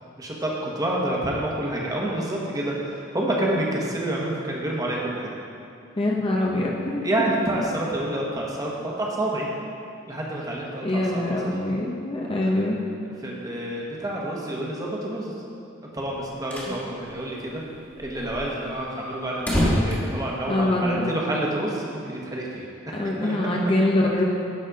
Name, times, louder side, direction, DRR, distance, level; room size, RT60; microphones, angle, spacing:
voice 1, 0.2-5.3 7.0-9.5 10.1-11.5 12.4-12.6 13.2-15.3 15.9-17.6 18.0-23.4, right 1 dB, 20° right, -3 dB, 1.2 m, -28 dB
voice 2, 6.0-7.0 10.8-12.8 16.7-16.8 20.5-21.1 22.9-24.2, left 1 dB, 25° left, -2 dB, 0.7 m, -24 dB
sound 1, 16.1-16.8 17.1-17.2 17.4-17.5 18.0-21.0, equal, 10° left, 1.5 m, -27 dB
11.5 x 4.2 x 5.2 m, 2.7 s
head